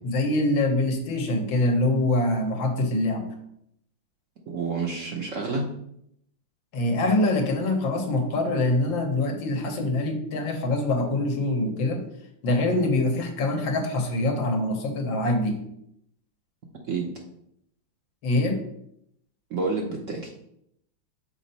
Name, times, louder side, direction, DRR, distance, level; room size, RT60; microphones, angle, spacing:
voice 1, 0.0-3.3 6.7-12.0 12.4-15.6 18.2-18.6, left 2 dB, 85° left, 4 dB, 1.8 m, -24 dB
voice 2, 4.5-5.6 16.9-17.1 19.5-20.3, right 4 dB, 60° right, 0 dB, 0.9 m, -29 dB
6.2 x 4.3 x 4.0 m, 0.74 s
omnidirectional pair, 2.1 m